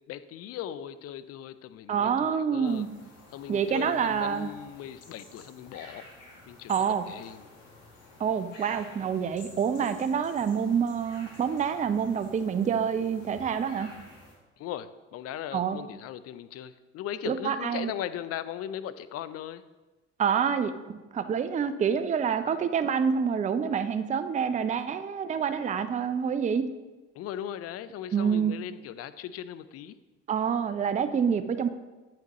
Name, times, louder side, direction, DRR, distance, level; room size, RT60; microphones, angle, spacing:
voice 1, 0.0-2.9 3.3-6.0 6.5-6.7 7.1-7.5 14.6-19.6 27.1-30.0, left 10 dB, 45° left, 14 dB, 0.5 m, -38 dB
voice 2, 1.9-2.9 3.5-4.5 6.7-7.0 8.2-13.9 15.5-15.8 17.3-17.9 20.2-26.6 28.1-28.5 30.3-31.7, right 7 dB, 20° right, 10 dB, 0.5 m, -27 dB
sound 1, 2.6-14.3, left 2 dB, 65° left, 2.1 m, -51 dB
8.7 x 5.7 x 3.0 m, 1.2 s
hypercardioid pair, 60°, 33 cm